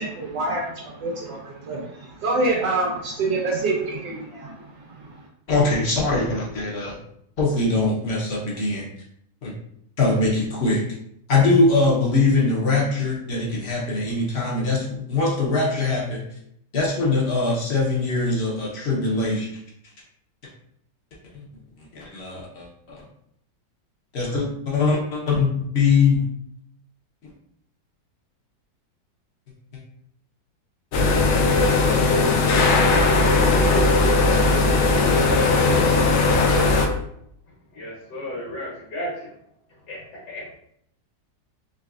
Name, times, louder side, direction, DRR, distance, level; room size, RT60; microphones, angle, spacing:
voice 1, 0.0-5.2, right 2 dB, 85° right, -2 dB, 1.4 m, -27 dB
voice 2, 5.5-6.9 7.4-8.8 9.4-9.5 10.0-10.8 11.3-16.2 16.7-19.5 21.3-21.6 21.9-23.0 24.1-26.2, left 3 dB, 50° left, -3 dB, 0.9 m, -22 dB
sound 1, 30.9-36.9, left 3 dB, 90° left, 0.6 m, -18 dB
voice 3, 37.7-39.3 39.9-40.6, equal, 65° left, -7 dB, 1.8 m, -34 dB
3.9 x 3.1 x 2.4 m, 0.70 s
omnidirectional pair, 1.9 m